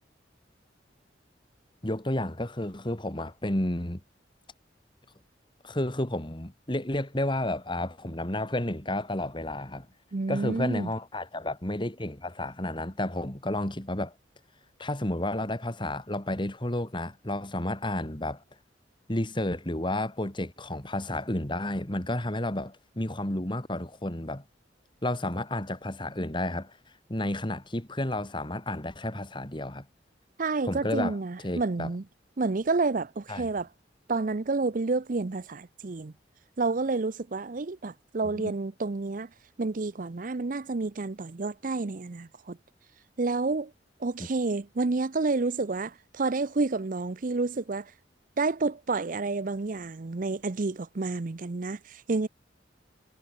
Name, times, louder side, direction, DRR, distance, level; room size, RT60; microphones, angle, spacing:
voice 1, 1.8-4.0 5.6-9.9 10.3-14.1 14.8-18.4 19.1-24.4 25.0-26.8 27.1-29.9 30.6-31.2 31.4-31.9 33.3-33.5 38.3-38.5, left 1 dB, 25° left, 2.4 m, -31 dB
voice 2, 10.1-10.9 30.4-32.0 32.4-33.7 34.1-36.1 36.6-39.3 39.6-42.6 43.2-43.7 44.0-47.9 48.4-52.3, right 3 dB, 45° right, 0.6 m, -29 dB
head